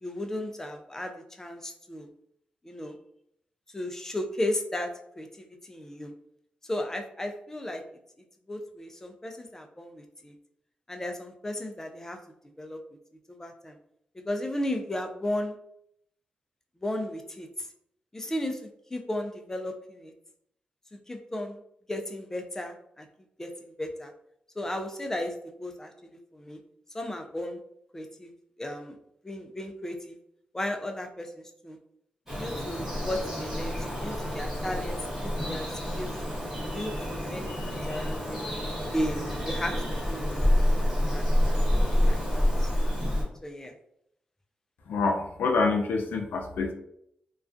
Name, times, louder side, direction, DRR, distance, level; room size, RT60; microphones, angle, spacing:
voice 1, 0.0-2.1 2.6-3.0 3.7-4.9 5.2-6.1 6.7-7.8 8.5-10.3 10.9-12.2 12.6-12.8 13.3-13.8 14.1-15.5 16.8-17.5 18.1-18.6 18.9-20.1 21.1-21.6 21.9-23.1 23.4-24.1 24.6-26.6 26.9-27.6 27.9-28.3 28.6-29.0 29.2-30.2 30.5-31.8 32.3-35.7 35.9-36.2 36.7-38.5 38.9-40.4 41.1-42.7 43.4-43.7, left 1 dB, 15° left, 4 dB, 0.3 m, -35 dB
Bird vocalization bird call bird song, 32.3-43.2, equal, 15° right, 1.1 m, -28 dB
voice 2, 44.9-46.7, left 3 dB, 85° left, 3 dB, 0.4 m, -26 dB
2.3 x 2.3 x 2.4 m, 0.73 s
wide cardioid pair, 100°, 3 cm